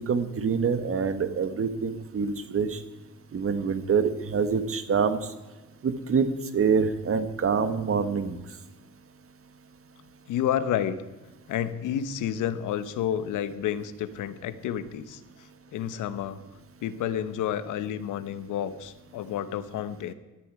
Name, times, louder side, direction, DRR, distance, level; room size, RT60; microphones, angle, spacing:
voice 1, 0.1-2.8 3.3-5.2 5.8-6.3 6.5-8.4, right 6 dB, 45° right, 10 dB, 1.6 m, -25 dB
voice 2, 10.3-11.0 11.5-16.4 16.8-20.1, left 10 dB, 85° left, 13 dB, 1.1 m, -30 dB
18.0 x 13.5 x 4.8 m, 1.2 s
cardioid pair, 90°, 30 cm